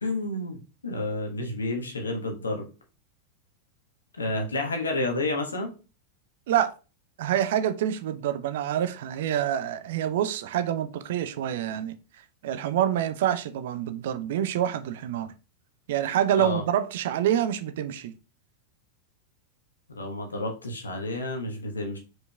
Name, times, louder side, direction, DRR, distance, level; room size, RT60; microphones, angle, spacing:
voice 1, 0.0-0.6 0.8-2.6 4.1-5.7 16.4-16.6 19.9-22.0, left 2 dB, 75° left, 1.3 m, -30 dB
voice 2, 7.2-11.9 12.4-15.3 15.9-18.1, right 10 dB, 55° right, 0.5 m, -26 dB
4.9 x 4.7 x 2.3 m
figure-of-eight pair, 90°, 0 cm